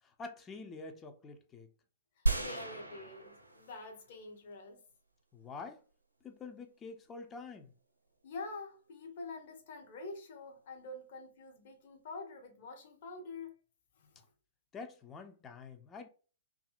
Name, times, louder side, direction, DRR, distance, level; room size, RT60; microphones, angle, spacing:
voice 1, 0.0-1.7 5.3-5.8 6.2-7.7 14.7-16.1, left 4 dB, 20° left, 0.4 m, -47 dB
voice 2, 2.2-4.8 8.2-13.6 14.0-14.2, left 3 dB, 45° left, 0.8 m, -46 dB
sound 1, 2.3-4.0 4.5-4.6, right 3 dB, 85° right, 0.5 m, -34 dB
2.7 x 2.5 x 2.3 m
figure-of-eight pair, 110°, 0 cm